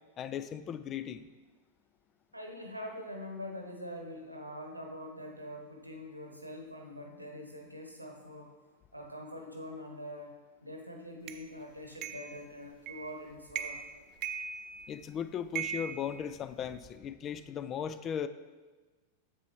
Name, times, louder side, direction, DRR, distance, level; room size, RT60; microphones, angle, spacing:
voice 1, 0.2-1.3 14.9-18.3, left 8 dB, 30° left, 13 dB, 0.3 m, -37 dB
voice 2, 2.3-8.5 8.9-10.4 10.6-14.1, left 1 dB, 85° right, 2 dB, 0.9 m, -44 dB
sound 1, 11.3-11.4 12.0-12.3 12.9-13.2 13.5-13.9 14.2-15.0 15.5-16.8, right 8 dB, 40° right, 0.4 m, -39 dB
8.1 x 6.9 x 3.0 m, 1.3 s
figure-of-eight pair, 90°, 0 cm